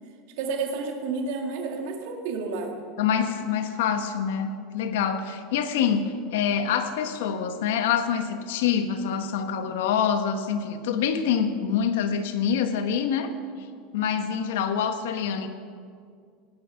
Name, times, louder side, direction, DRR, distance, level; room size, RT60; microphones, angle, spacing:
voice 1, 0.4-2.7, right 4 dB, 60° right, 2 dB, 2.1 m, -30 dB
voice 2, 3.0-13.3 13.9-15.5, left 7 dB, 80° left, 8 dB, 1.3 m, -26 dB
18.0 x 10.5 x 5.9 m, 2.2 s
supercardioid pair, 180°, 0 cm